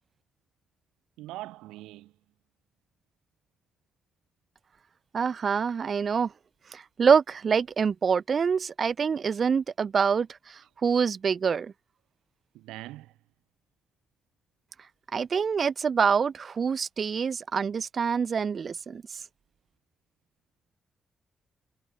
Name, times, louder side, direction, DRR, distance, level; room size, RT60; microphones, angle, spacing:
voice 1, 1.2-2.1 12.5-13.1, right 17 dB, 85° right, 2.0 m, -42 dB
voice 2, 5.1-6.3 6.7-11.7 15.1-19.0, right 6 dB, 55° right, 3.6 m, -26 dB
hypercardioid pair, 45°, 0 cm